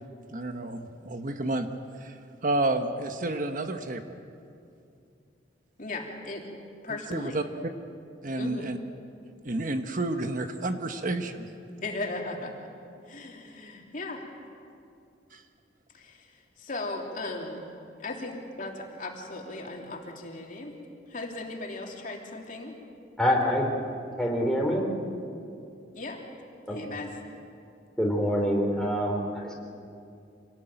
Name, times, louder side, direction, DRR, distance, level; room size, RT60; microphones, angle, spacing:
voice 1, 0.3-1.7 2.0-2.2 2.4-4.0 7.1-7.4 8.2-8.8 9.4-11.5 15.3-15.4, right 2 dB, 45° right, 7 dB, 1.1 m, -30 dB
voice 2, 5.8-6.5 6.8-7.4 8.4-8.7 11.8-12.5 13.0-14.2 15.9-17.7 18.0-20.8 21.1-22.8 25.9-26.2 26.7-27.1, left 2 dB, 45° left, 0 dB, 3.2 m, -37 dB
voice 3, 23.2-23.7 24.2-24.9 26.7-26.8 28.0-29.5, equal, 5° left, -1 dB, 3.6 m, -25 dB
26.5 x 18.5 x 9.1 m, 2.5 s
head